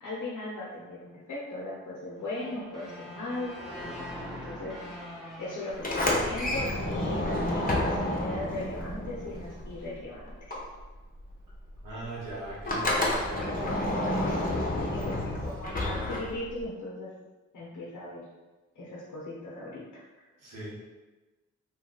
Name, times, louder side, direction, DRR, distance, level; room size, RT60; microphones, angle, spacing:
voice 1, 0.0-3.6 4.0-4.8 5.4-10.5 14.8-17.1 17.5-18.2 18.7-20.2, left 2 dB, 70° left, -5 dB, 0.8 m, -38 dB
sound 1, 2.2-7.3, equal, ahead, 1.0 m, -43 dB
Sliding door, 5.7-10.0 10.3-16.7, left 1 dB, 30° left, 0.9 m, -30 dB
voice 2, 11.8-14.2 14.5-15.2 20.4-20.8, right 2 dB, 85° right, -7 dB, 1.1 m, -42 dB
2.7 x 2.3 x 3.8 m, 1.2 s
cardioid pair, 50°, 31 cm